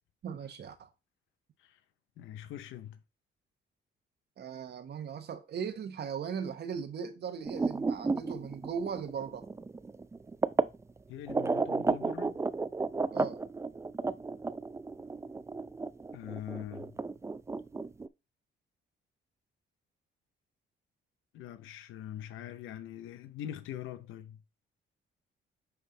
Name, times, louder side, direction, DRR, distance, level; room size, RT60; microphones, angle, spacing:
voice 1, 0.2-0.9 4.4-9.5 13.1-13.4, right 7 dB, 55° right, 1.1 m, -38 dB
voice 2, 2.2-3.0 11.1-12.4 16.1-17.0 21.3-24.4, left 11 dB, 85° left, 0.7 m, -43 dB
sound 1, 7.4-10.8 11.3-18.1, right 3 dB, 15° right, 0.3 m, -33 dB
9.4 x 3.5 x 3.8 m
cardioid pair, 90°, 20 cm